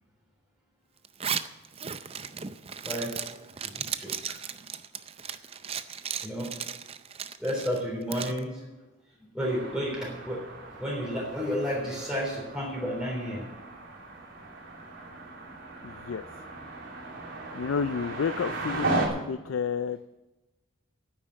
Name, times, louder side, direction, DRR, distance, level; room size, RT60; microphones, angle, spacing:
Zipper (clothing), 1.0-8.4, right 7 dB, 30° right, 0.5 m, -36 dB
voice 1, 2.8-3.2 3.6-4.4 6.2-6.5 7.4-8.6 9.3-10.4 10.8-13.4, equal, 5° right, -4 dB, 3.5 m, -31 dB
sound 1, 9.4-19.1, right 3 dB, 65° right, 2.9 m, -36 dB
voice 2, 15.8-16.2 17.5-20.0, left 6 dB, 70° left, 12 dB, 0.4 m, -30 dB
9.6 x 9.0 x 8.9 m, 1.1 s
head